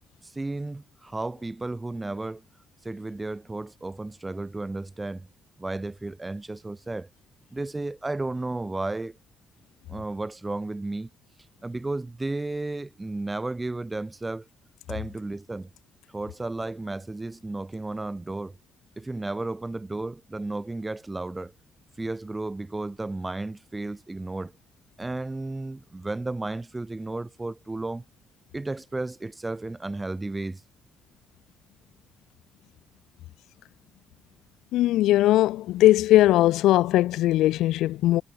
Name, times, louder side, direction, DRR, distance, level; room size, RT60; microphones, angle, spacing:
voice 1, 0.2-2.4 2.8-5.3 5.6-7.1 7.5-9.2 9.9-11.1 11.6-14.5 14.9-15.7 16.1-18.6 19.0-21.5 22.0-24.5 25.0-28.0 28.5-30.6, right 2 dB, 15° right, 2.1 m, -33 dB
voice 2, 34.7-38.2, left 15 dB, 90° left, 0.7 m, -19 dB
cardioid pair, 90°, 0 cm